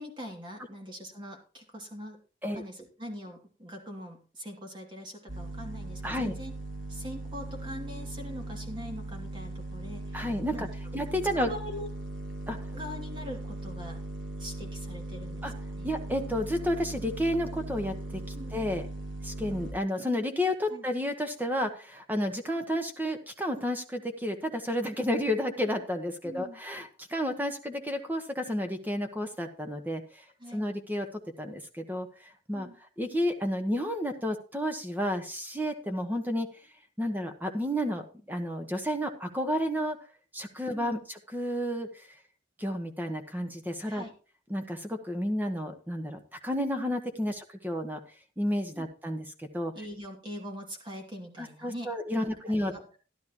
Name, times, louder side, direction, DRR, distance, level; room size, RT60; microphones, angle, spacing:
voice 1, 0.0-2.2 2.4-6.5 6.9-10.3 10.5-10.7 11.3-11.9 12.7-14.0 14.4-15.9 18.3-18.6 20.7-20.8 26.2-26.6 30.4-30.6 32.5-32.8 40.7-41.0 43.9-44.1 48.7-48.8 49.7-51.9 52.2-52.3 52.6-52.9, equal, 25° right, 1 dB, 2.6 m, -42 dB
sound 1, 5.3-19.7, right 2 dB, 90° right, 2.1 m, -39 dB
voice 2, 6.0-6.3 10.1-10.7 10.9-11.5 12.5-12.6 15.4-15.5 15.8-18.2 18.5-18.8 19.2-30.0 30.5-31.1 31.4-32.1 32.5-32.7 33.0-36.5 37.0-40.0 40.3-41.9 42.6-44.0 44.5-48.0 48.4-49.2 49.5-49.7 51.4-52.7, equal, 10° right, 6 dB, 1.2 m, -31 dB
13.5 x 11.5 x 3.0 m, 0.36 s
head